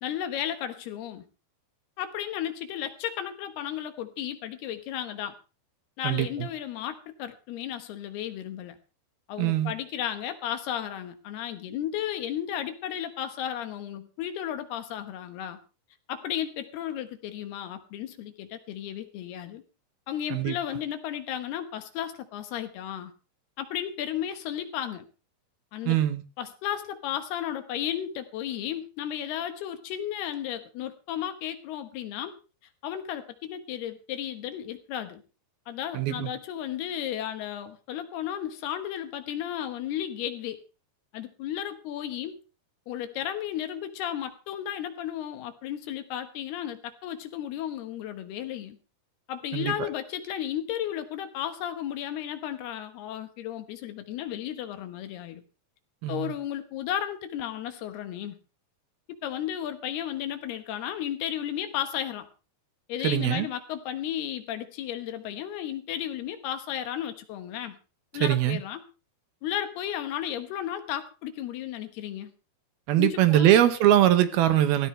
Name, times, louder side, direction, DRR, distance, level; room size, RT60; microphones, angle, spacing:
voice 1, 0.0-1.2 2.0-5.4 6.0-8.8 9.3-15.6 16.1-19.6 20.1-23.1 23.6-25.1 25.7-26.0 26.4-32.4 32.8-35.2 35.7-40.6 41.1-42.4 42.9-48.8 49.3-55.4 56.1-58.4 59.2-62.3 62.9-67.8 68.1-68.8 69.4-72.3 73.0-73.5, left 10 dB, 85° left, 9 dB, 3.4 m, -34 dB
voice 2, 6.0-6.5 9.4-9.7 20.3-20.6 25.9-26.2 35.9-36.3 49.5-49.9 56.0-56.3 63.0-63.5 68.2-68.6 72.9-74.9, right 12 dB, 75° right, 10 dB, 3.0 m, -22 dB
16.5 x 16.5 x 3.3 m, 0.32 s
omnidirectional pair, 4.5 m